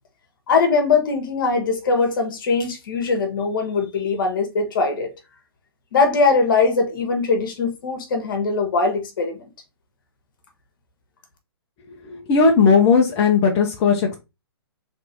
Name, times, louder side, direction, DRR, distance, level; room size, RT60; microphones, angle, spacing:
voice 1, 0.5-5.1 5.9-9.5, left 4 dB, 55° left, 1.4 m, -21 dB
voice 2, 12.0-14.2, left 5 dB, 30° left, 0.9 m, -17 dB
3.5 x 3.1 x 4.2 m
figure-of-eight pair, 125°, 14 cm